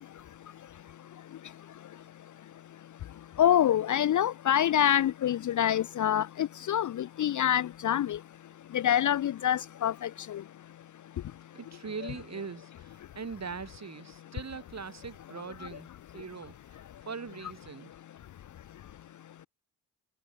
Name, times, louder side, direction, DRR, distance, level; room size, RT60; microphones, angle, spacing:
voice 1, 3.4-8.2 8.7-10.4, left 10 dB, 45° left, 0.6 m, -26 dB
voice 2, 11.5-15.9 16.1-16.6 17.1-17.9, right 5 dB, 40° right, 7.3 m, -41 dB
supercardioid pair, 70°, 41 cm